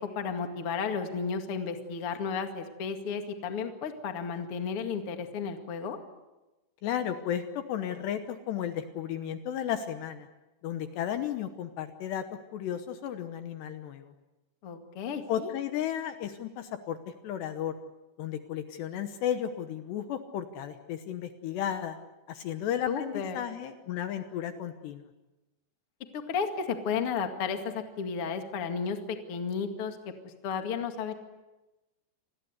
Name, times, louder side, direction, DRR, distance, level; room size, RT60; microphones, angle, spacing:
voice 1, 0.0-6.0 14.6-15.5 22.9-23.4 26.1-30.0 30.2-31.1, left 6 dB, 50° left, 5 dB, 1.8 m, -33 dB
voice 2, 6.8-10.3 10.6-12.2 12.5-14.1 15.3-17.7 18.2-22.0 22.3-25.1, left 10 dB, 70° left, 8 dB, 2.8 m, -34 dB
28.5 x 20.5 x 8.1 m, 1.1 s
omnidirectional pair, 5.7 m